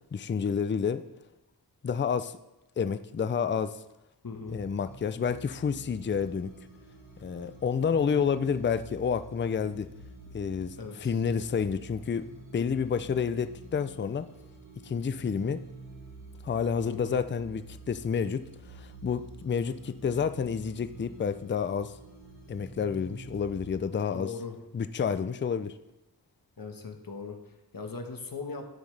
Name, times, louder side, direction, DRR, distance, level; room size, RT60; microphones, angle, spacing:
voice 1, 0.1-1.0 1.8-2.3 2.8-3.8 4.5-6.5 7.2-9.9 10.3-12.3 12.5-14.3 14.8-15.6 16.4-21.9 22.5-24.3 24.7-25.7, left 6 dB, 30° left, 11 dB, 0.4 m, -29 dB
voice 2, 4.2-4.6 10.8-11.2 16.9-17.1 24.1-24.6 26.6-28.7, left 4 dB, 55° left, 4 dB, 1.3 m, -39 dB
sound 1, 4.4-23.8, right 2 dB, 60° right, 3.0 m, -48 dB
11.0 x 9.1 x 3.3 m, 0.95 s
wide cardioid pair, 115°, 40 cm